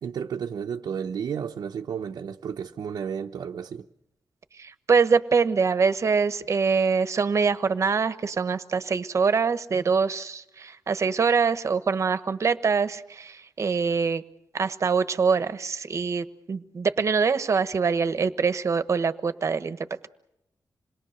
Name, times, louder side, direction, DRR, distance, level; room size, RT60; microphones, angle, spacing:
voice 1, 0.0-3.9, right 7 dB, 80° right, 1.0 m, -32 dB
voice 2, 4.6-14.2 14.5-19.8, right 5 dB, 45° right, 1.3 m, -24 dB
27.5 x 21.0 x 6.7 m
wide cardioid pair, 120°, 7 cm